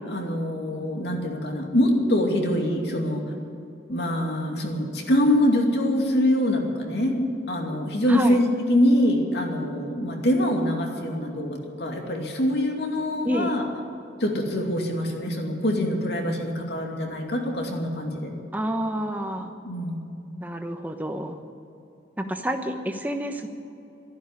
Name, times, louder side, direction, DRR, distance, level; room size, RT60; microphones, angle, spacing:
voice 1, 0.1-3.2 3.9-13.6 14.2-18.3 19.6-20.0, left 1 dB, 70° left, 1 dB, 2.6 m, -24 dB
voice 2, 8.1-8.4 13.2-13.5 18.5-19.5 20.4-21.4 22.2-23.5, equal, 10° right, 5 dB, 1.0 m, -28 dB
13.0 x 11.0 x 9.8 m, 2.7 s
head